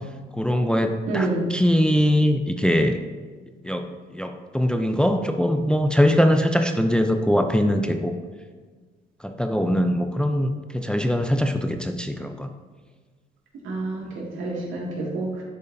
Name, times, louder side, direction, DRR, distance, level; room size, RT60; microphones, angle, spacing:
voice 1, 0.3-3.0 3.6-8.2 9.2-12.5, equal, 5° left, 5 dB, 0.5 m, -22 dB
voice 2, 1.1-1.4 13.6-15.4, right 2 dB, 85° right, -3 dB, 2.1 m, -28 dB
10.5 x 5.3 x 2.7 m, 1.4 s
cardioid pair, 90°, 20 cm